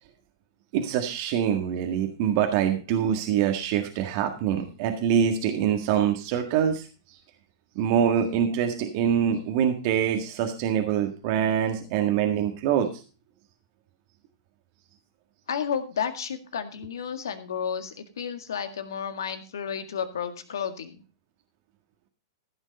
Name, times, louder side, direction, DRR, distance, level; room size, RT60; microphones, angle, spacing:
voice 1, 0.7-6.9 7.8-12.9, right 9 dB, 50° right, 4 dB, 1.7 m, -24 dB
voice 2, 15.5-21.0, left 7 dB, 80° left, 8 dB, 1.8 m, -32 dB
14.5 x 6.2 x 5.2 m, 0.34 s
hypercardioid pair, 115°, 2 cm